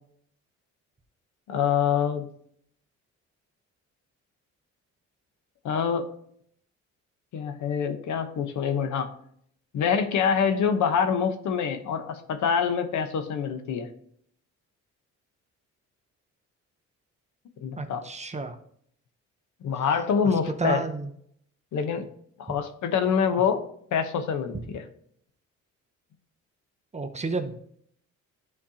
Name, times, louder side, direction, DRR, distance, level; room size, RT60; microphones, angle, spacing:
voice 1, 1.5-2.3 5.6-6.1 7.3-9.1 9.7-13.9 17.6-18.0 19.6-20.8 21.7-22.1 22.4-23.6 23.9-24.8, left 7 dB, 75° left, 8 dB, 1.0 m, -25 dB
voice 2, 17.8-18.6 20.2-21.1 23.3-23.4 26.9-27.5, right 4 dB, 20° right, 7 dB, 0.8 m, -31 dB
11.5 x 4.3 x 2.8 m, 0.66 s
cardioid pair, 90°, 30 cm